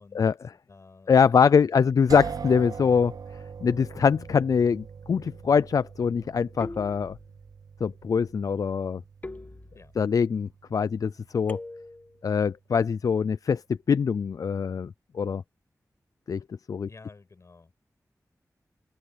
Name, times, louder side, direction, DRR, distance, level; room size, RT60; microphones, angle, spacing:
voice 1, 0.0-1.9 9.7-9.9 16.8-17.7, left 3 dB, 50° left, 6.1 m, -52 dB
voice 2, 1.1-3.1 3.6-7.1 7.8-9.0 10.0-11.6 12.2-13.6 13.9-15.4 16.3-16.9, left 6 dB, 65° left, 0.3 m, -23 dB
sound 1, 2.1-11.9, right 6 dB, 75° right, 0.4 m, -42 dB
sound 2, 6.6-7.5 9.2-10.2 11.5-12.2, left 2 dB, 25° left, 1.3 m, -42 dB
wide cardioid pair, 110°, 6 cm